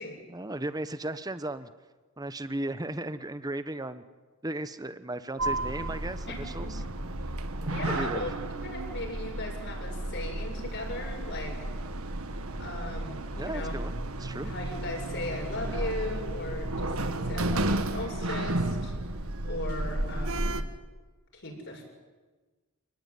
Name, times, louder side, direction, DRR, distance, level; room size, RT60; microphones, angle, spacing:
voice 1, 0.3-1.7 2.2-4.0 4.4-6.8 7.9-8.2 13.4-14.5, right 1 dB, 15° right, 12 dB, 1.0 m, -35 dB
Sliding door, 5.4-20.6, right 1 dB, 75° right, 1.6 m, -32 dB
voice 2, 6.3-6.9 7.7-11.6 12.6-13.7 14.4-18.9 19.4-20.6 21.3-21.8, left 1 dB, 55° left, -1 dB, 7.4 m, -37 dB
29.5 x 20.0 x 9.7 m, 1.3 s
head